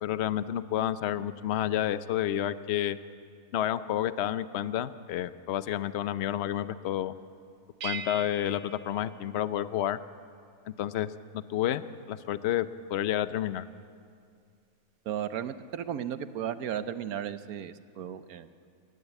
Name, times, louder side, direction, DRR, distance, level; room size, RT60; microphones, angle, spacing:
voice 1, 0.0-3.0 3.5-7.1 7.8-10.0 10.8-11.1 11.3-13.6, left 11 dB, 60° left, 13 dB, 0.8 m, -30 dB
sound 1, 7.8-10.0, right 6 dB, 70° right, 1.3 m, -41 dB
voice 2, 15.0-18.5, right 9 dB, 90° right, 11 dB, 1.3 m, -35 dB
29.0 x 12.5 x 8.3 m, 2.3 s
omnidirectional pair, 1.5 m